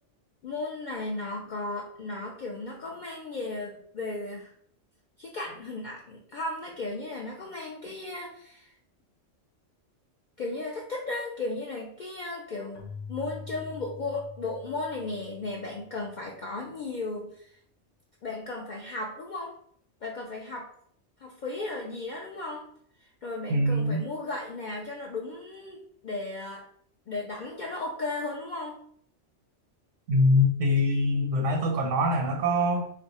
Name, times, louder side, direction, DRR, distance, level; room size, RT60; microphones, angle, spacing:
voice 1, 0.4-4.5 5.2-8.7 10.4-17.6 18.2-19.5 20.0-20.7 21.2-22.7 23.0-26.7 27.1-28.8, left 2 dB, 60° left, -1 dB, 0.5 m, -35 dB
Keyboard (musical), 12.7-16.3, left 5 dB, 80° left, 1.0 m, -45 dB
voice 2, 23.5-24.1 30.1-32.9, left 1 dB, 85° right, 1 dB, 1.0 m, -24 dB
2.5 x 2.3 x 4.0 m, 0.63 s
omnidirectional pair, 1.2 m